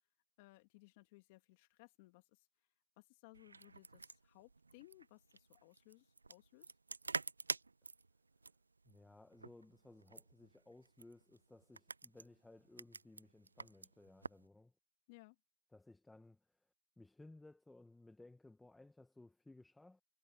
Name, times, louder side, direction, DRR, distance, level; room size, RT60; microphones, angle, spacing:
voice 1, 0.4-2.5 3.0-6.7 15.1-15.4, left 23 dB, 20° left, 2.4 m, -62 dB
sound 1, 3.3-14.5, right 3 dB, 75° right, 0.5 m, -48 dB
voice 2, 8.8-14.7 15.7-16.7 17.0-20.0, left 2 dB, ahead, 0.9 m, -60 dB
hypercardioid pair, 165°, 0 cm